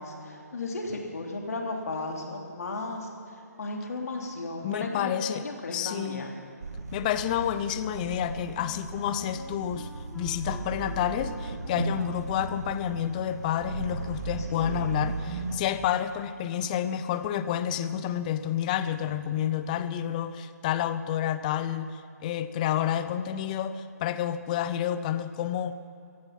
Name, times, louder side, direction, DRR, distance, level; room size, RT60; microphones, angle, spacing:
voice 1, 0.0-3.1 3.6-6.3 14.5-14.9, left 2 dB, 60° left, 1 dB, 3.1 m, -35 dB
voice 2, 4.6-5.5 5.7-6.2 6.9-9.9 10.1-25.8, left 10 dB, 25° left, 13 dB, 0.6 m, -29 dB
sound 1, 6.6-15.6, right 3 dB, 65° right, 1.8 m, -36 dB
Wind instrument woodwind instrument, 8.2-13.7, left 2 dB, 5° left, 1.3 m, -51 dB
16.0 x 15.0 x 5.8 m, 2.6 s
figure-of-eight pair, 145°, 9 cm